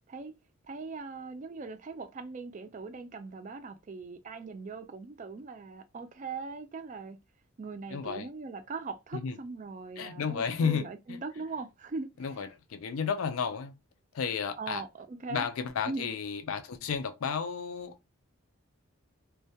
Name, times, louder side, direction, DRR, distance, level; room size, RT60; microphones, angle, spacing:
voice 1, 0.6-7.2 7.6-12.3 14.6-15.5 15.9-16.1, right 4 dB, 35° right, 0.3 m, -40 dB
voice 2, 7.9-8.3 9.1-9.3 10.0-11.2 12.2-13.7 14.1-14.8 15.3-18.1, left 6 dB, 70° left, 0.4 m, -33 dB
2.2 x 2.1 x 2.7 m
head